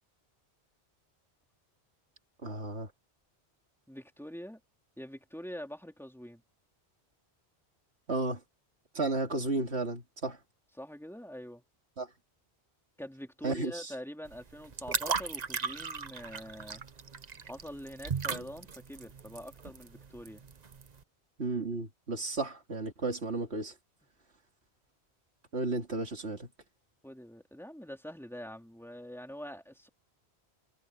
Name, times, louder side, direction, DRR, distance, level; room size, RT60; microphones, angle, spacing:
voice 1, 2.4-2.9 8.1-8.4 8.9-10.4 12.0-12.1 13.4-13.9 21.4-23.7 25.5-26.5, right 3 dB, 80° right, 2.9 m, -33 dB
voice 2, 3.9-4.6 5.0-6.4 10.8-11.6 13.0-16.8 17.4-20.4 27.0-29.9, equal, ahead, 2.8 m, -44 dB
sound 1, 14.3-21.0, right 5 dB, 40° right, 1.0 m, -37 dB
omnidirectional pair, 1.1 m